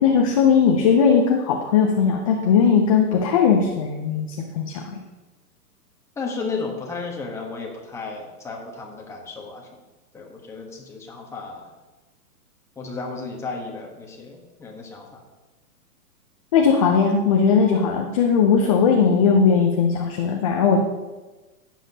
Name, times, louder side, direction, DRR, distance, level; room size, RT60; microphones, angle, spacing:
voice 1, 0.0-4.3 4.5-5.0 16.5-20.8, left 6 dB, 25° left, 1 dB, 0.5 m, -18 dB
voice 2, 6.2-9.7 10.1-11.7 12.8-15.2 18.6-18.7, left 4 dB, 5° left, -1 dB, 1.1 m, -34 dB
17.0 x 7.4 x 2.8 m, 1.2 s
hypercardioid pair, 150°, 48 cm